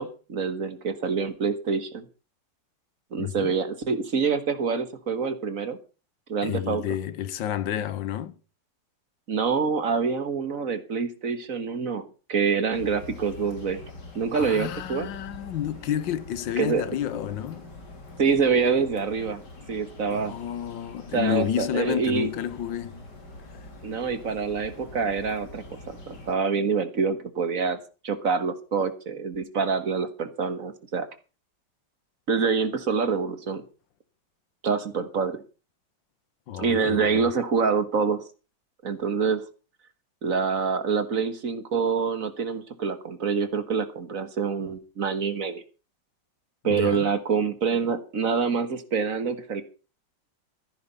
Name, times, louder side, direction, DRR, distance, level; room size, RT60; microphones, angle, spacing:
voice 1, 0.0-2.0 3.1-5.8 6.3-6.8 9.3-13.8 14.1-15.1 16.6-16.8 18.2-19.4 19.7-20.3 21.1-22.3 23.8-27.8 28.0-31.1 32.3-33.6 34.6-35.4 36.5-38.2 38.8-39.4 40.2-45.6 46.6-49.6, right 5 dB, 50° right, 1.8 m, -26 dB
voice 2, 3.2-3.6 6.4-8.4 14.3-17.7 20.1-23.0 23.5-23.7 36.5-37.3 46.6-47.1, left 10 dB, 90° left, 1.6 m, -30 dB
sound 1, 12.7-26.3, left 2 dB, 65° left, 3.8 m, -44 dB
14.5 x 10.0 x 5.5 m
omnidirectional pair, 2.0 m